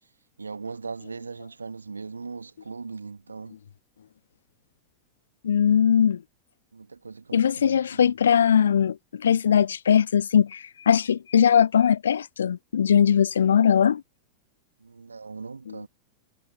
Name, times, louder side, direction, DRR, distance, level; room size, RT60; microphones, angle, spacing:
voice 1, 0.4-3.6 6.7-8.1 14.8-15.9, right 4 dB, 75° right, 2.4 m, -39 dB
voice 2, 5.4-6.2 7.3-14.0 15.7-15.8, left 8 dB, 65° left, 0.6 m, -20 dB
figure-of-eight pair, 90°, 0 cm